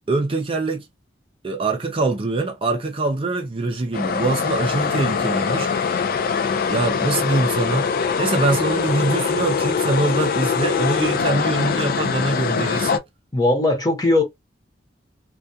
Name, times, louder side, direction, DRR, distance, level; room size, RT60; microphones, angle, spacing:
voice 1, 0.1-0.9 1.4-6.0 6.7-7.9 8.2-13.0, right 3 dB, 30° right, 0.4 m, -23 dB
sound 1, 3.9-13.0, left 6 dB, 50° left, 0.3 m, -23 dB
voice 2, 13.3-14.2, left 2 dB, 20° left, 0.9 m, -18 dB
2.3 x 2.3 x 2.6 m
head